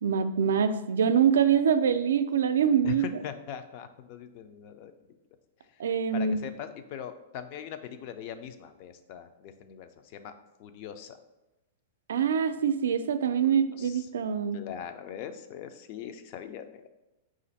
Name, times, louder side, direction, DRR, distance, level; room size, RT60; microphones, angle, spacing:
voice 1, 0.0-3.0 5.8-6.4 12.1-14.6, right 7 dB, 85° right, 10 dB, 0.3 m, -24 dB
voice 2, 2.8-5.1 6.1-10.3 10.6-11.2 13.4-14.1 14.5-16.8, left 9 dB, 45° left, 9 dB, 0.4 m, -41 dB
4.9 x 2.5 x 4.1 m, 0.99 s
hypercardioid pair, 140°, 0 cm